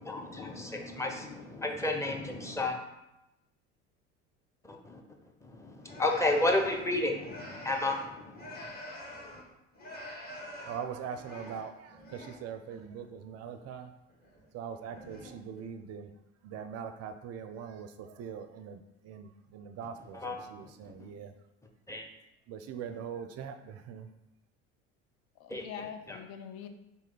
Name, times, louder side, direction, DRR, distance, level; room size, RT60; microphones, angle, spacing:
voice 1, 0.0-2.8 4.6-5.0 5.4-8.7 20.1-21.1 21.9-22.1 25.5-25.6 26.1-26.2, left 2 dB, 10° left, 2 dB, 0.7 m, -32 dB
sound 1, 5.8-9.5 9.7-12.4 12.7-13.1 14.1-14.5 14.8-15.6, left 1 dB, 25° left, 1.6 m, -46 dB
voice 2, 10.6-13.9 14.5-16.1 16.4-21.3 22.5-24.1, right 7 dB, 45° right, 8 dB, 0.5 m, -42 dB
voice 3, 25.4-26.7, left 8 dB, 70° left, 7 dB, 0.6 m, -44 dB
4.0 x 3.2 x 3.9 m, 0.90 s
hypercardioid pair, 70°, 35 cm